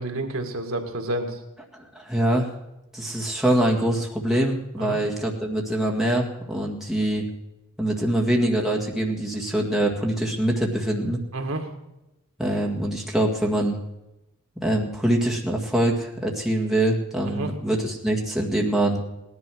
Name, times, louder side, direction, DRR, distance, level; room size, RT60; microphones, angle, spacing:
voice 1, 0.0-1.4 4.8-5.0 11.3-11.7 17.3-17.5, right 1 dB, 70° right, 4 dB, 2.0 m, -29 dB
voice 2, 1.7-2.5 2.9-7.3 7.8-11.2 12.4-13.8 14.6-19.0, right 1 dB, ahead, -2 dB, 1.9 m, -24 dB
17.5 x 11.0 x 6.1 m, 0.95 s
head